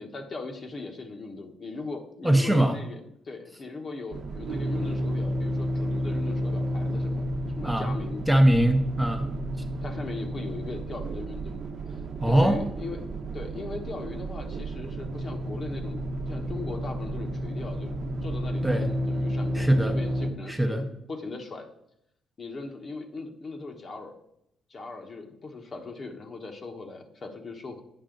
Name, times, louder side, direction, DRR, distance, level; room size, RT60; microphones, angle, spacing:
voice 1, 0.0-3.0 3.2-7.3 7.6-8.2 9.8-13.0 13.3-16.0 16.3-17.9 18.2-21.7 22.4-24.2 24.7-27.8, left 3 dB, 45° left, 4 dB, 1.2 m, -39 dB
voice 2, 2.2-2.8 7.6-7.9 8.3-9.3 12.2-12.6 18.6-18.9 19.5-20.0 20.5-20.9, right 1 dB, 5° right, 4 dB, 0.7 m, -22 dB
sound 1, 4.1-20.3, equal, 55° right, 0.9 m, -31 dB
8.8 x 5.5 x 3.8 m, 0.78 s
cardioid pair, 90°, 0 cm